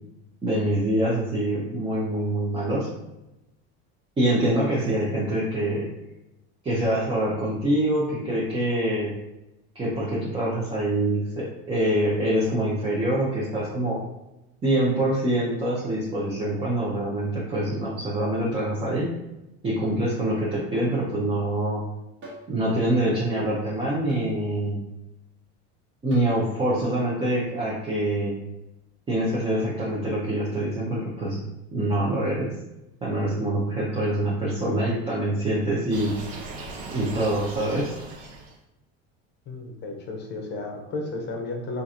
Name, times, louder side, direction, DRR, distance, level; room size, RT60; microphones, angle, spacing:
voice 1, 0.4-2.9 4.2-5.9 6.6-9.1 9.7-14.0 14.6-19.1 19.6-21.8 22.5-24.8 26.0-28.3 29.1-31.4 31.7-32.5 33.0-36.1 36.9-37.9, right 1 dB, 15° right, -6 dB, 0.6 m, -25 dB
sound 1, 22.2-22.5 24.1-24.3 26.1-26.4, equal, 35° right, 1.0 m, -42 dB
sound 2, 35.9-38.6, right 3 dB, 80° right, 0.8 m, -38 dB
voice 2, 39.5-41.8, left 2 dB, 35° left, 1 dB, 0.7 m, -33 dB
3.7 x 2.5 x 2.8 m, 0.93 s
supercardioid pair, 140°, 32 cm